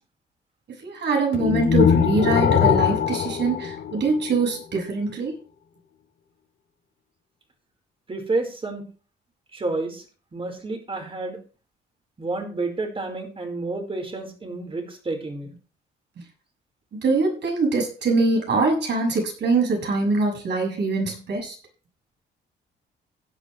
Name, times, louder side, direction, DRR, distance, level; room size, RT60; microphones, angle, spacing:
voice 1, 0.8-5.3 16.9-21.5, right 3 dB, 60° right, 1 dB, 6.8 m, -23 dB
sound 1, 1.3-4.5, left 8 dB, 75° left, 4.3 m, -21 dB
voice 2, 8.1-8.9 9.5-10.0 10.3-11.4 12.2-15.5, right 3 dB, 25° right, 4 dB, 4.6 m, -30 dB
16.0 x 10.0 x 3.3 m, 0.37 s
cardioid pair, 90°, 20 cm